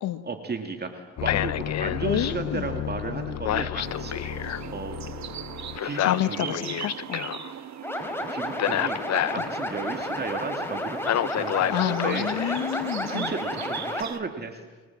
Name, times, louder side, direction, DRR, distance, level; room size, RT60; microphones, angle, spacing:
voice 1, 0.2-4.1 4.4-5.0 5.8-6.6 8.3-9.0 9.3-12.3 13.0-14.6, right 4 dB, 35° right, 5 dB, 2.6 m, -34 dB
sound 1, 1.2-7.5 8.6-9.5 11.0-12.8 14.0-14.1, left 11 dB, 60° left, 0.9 m, -29 dB
voice 2, 2.0-2.7 6.0-7.3 9.4-9.5 11.7-13.3, left 12 dB, 85° left, 11 dB, 1.6 m, -29 dB
sound 2, 3.8-14.2, right 9 dB, 65° right, 1.4 m, -40 dB
sound 3, 7.8-14.0, left 1 dB, 10° left, 4.6 m, -31 dB
29.5 x 23.5 x 7.6 m, 1.3 s
cardioid pair, 90°, 30 cm